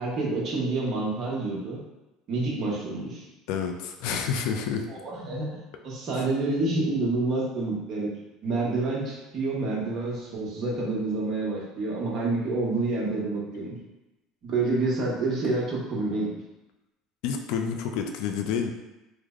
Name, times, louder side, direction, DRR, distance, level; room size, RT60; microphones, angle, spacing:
voice 1, 0.0-1.8 2.3-3.2 4.9-5.5 5.8-8.1 8.4-13.7 14.4-16.3, right 2 dB, 45° right, -4 dB, 1.0 m, -28 dB
voice 2, 3.5-4.9 6.2-6.3 17.2-18.7, left 6 dB, 75° left, 4 dB, 0.4 m, -29 dB
3.2 x 2.1 x 3.6 m, 0.98 s
supercardioid pair, 125°, 0 cm